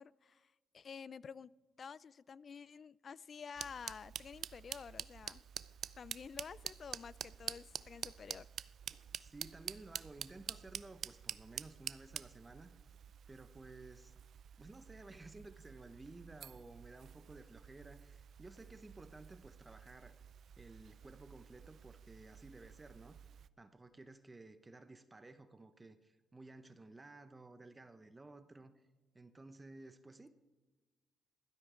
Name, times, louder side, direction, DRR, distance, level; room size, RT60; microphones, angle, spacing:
voice 1, 0.0-1.5 1.8-5.4 6.0-8.5, left 6 dB, 45° left, 21 dB, 0.3 m, -50 dB
sound 1, 3.6-23.5, right 8 dB, 60° right, 0.4 m, -49 dB
voice 2, 9.2-12.7 13.3-14.1 14.6-20.1 20.6-23.2 23.6-28.8 29.1-30.3, right 2 dB, 20° right, 10 dB, 0.8 m, -55 dB
15.5 x 12.5 x 3.8 m, 1.2 s
cardioid pair, 90°, 0 cm